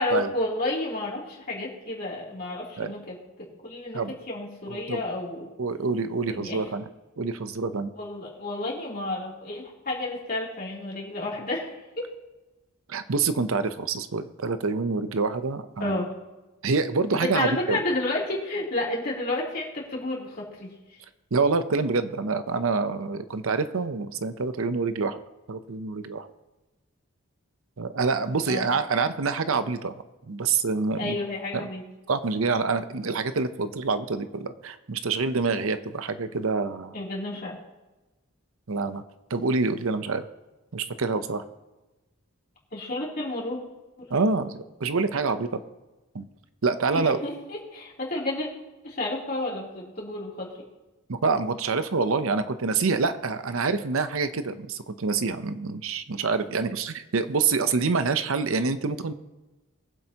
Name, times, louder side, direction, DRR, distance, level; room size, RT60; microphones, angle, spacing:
voice 1, 0.0-5.5 6.3-6.6 7.9-12.1 15.8-16.1 17.2-21.0 28.5-28.7 31.0-31.8 36.9-37.6 42.7-43.6 46.9-48.5 48.8-50.5, left 2 dB, 40° left, -4 dB, 3.2 m, -31 dB
voice 2, 4.7-5.0 5.6-6.8 7.2-7.9 12.9-16.0 16.6-17.8 21.3-25.2 25.5-26.3 27.8-29.9 30.3-31.2 31.5-31.7 32.1-36.9 38.7-39.0 39.3-40.2 40.7-41.4 44.1-45.6 46.1-46.3 46.6-47.2 51.1-59.1, right 4 dB, 75° right, 10 dB, 0.7 m, -26 dB
22.0 x 7.8 x 2.9 m, 1.1 s
head